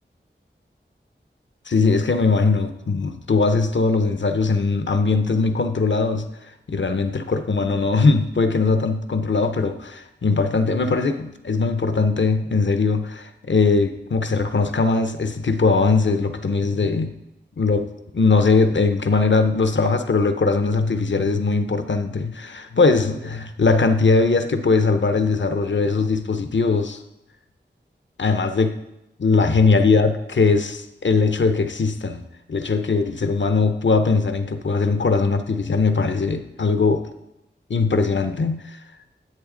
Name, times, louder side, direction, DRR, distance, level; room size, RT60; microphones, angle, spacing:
voice 1, 1.7-17.1 17.6-27.0 28.2-28.7 29.2-32.2 32.5-37.1 37.7-38.8, left 4 dB, 70° left, 8 dB, 0.7 m, -20 dB
10.5 x 7.9 x 3.8 m, 0.87 s
wide cardioid pair, 50°, 20 cm